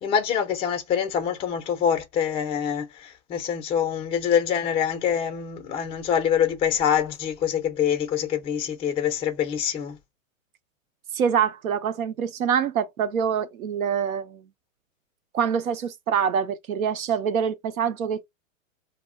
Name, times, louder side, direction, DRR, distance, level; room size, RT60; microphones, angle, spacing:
voice 1, 0.0-10.0, left 8 dB, 15° left, 0.4 m, -25 dB
voice 2, 11.1-14.4 15.3-18.3, right 7 dB, 85° right, 0.7 m, -25 dB
2.2 x 2.0 x 3.6 m
hypercardioid pair, 125°, 41 cm